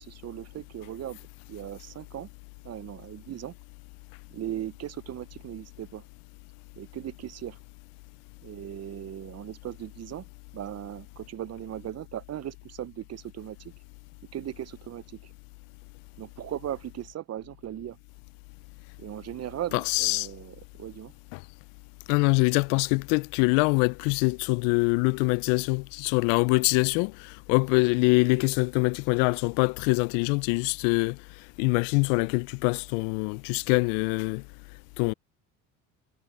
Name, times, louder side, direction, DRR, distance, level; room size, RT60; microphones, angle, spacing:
voice 1, 0.0-2.3 2.6-3.5 4.3-6.0 6.8-7.6 8.4-10.2 10.5-13.7 14.3-15.3 16.2-18.0 19.0-21.1, right 11 dB, 35° right, 0.6 m, -38 dB
voice 2, 19.7-20.3 21.3-21.4 22.1-31.2 31.6-34.4 35.0-35.1, left 31 dB, 70° left, 0.6 m, -24 dB
hypercardioid pair, 65°, 43 cm